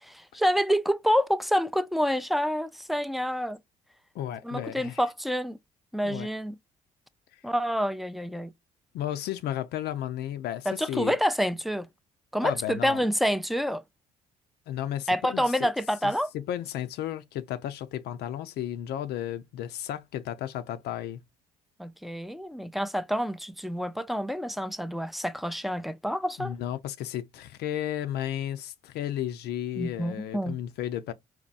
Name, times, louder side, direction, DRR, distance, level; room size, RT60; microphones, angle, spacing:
voice 1, 0.0-3.6 4.4-5.6 5.9-6.6 7.4-8.5 10.7-11.9 12.3-13.8 15.1-16.3 21.8-26.5 29.8-30.6, equal, ahead, 0.4 m, -28 dB
voice 2, 4.1-5.0 6.0-6.3 7.3-7.4 8.9-11.2 12.4-13.0 14.7-15.7 16.0-21.2 26.4-31.1, left 11 dB, 65° left, 0.4 m, -33 dB
4.1 x 2.2 x 2.3 m
hypercardioid pair, 55°, 18 cm